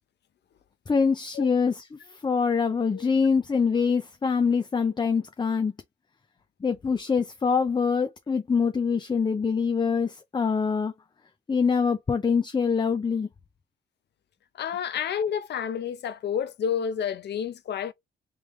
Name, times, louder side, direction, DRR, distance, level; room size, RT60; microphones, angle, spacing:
voice 1, 0.9-5.7 6.6-10.9 11.5-13.3, left 5 dB, 25° left, 0.6 m, -24 dB
voice 2, 14.6-17.9, left 8 dB, 60° left, 0.7 m, -30 dB
3.4 x 3.3 x 3.1 m
cardioid pair, 90°, 20 cm